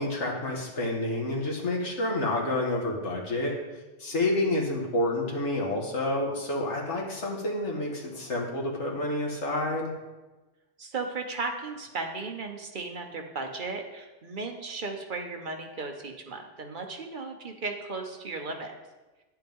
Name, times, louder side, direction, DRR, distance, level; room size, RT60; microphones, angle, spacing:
voice 1, 0.0-3.5 4.0-9.9, left 1 dB, 70° left, -1 dB, 1.9 m, -29 dB
voice 2, 10.8-18.8, right 3 dB, 45° right, 4 dB, 0.9 m, -36 dB
9.7 x 7.7 x 3.6 m, 1.2 s
omnidirectional pair, 1.3 m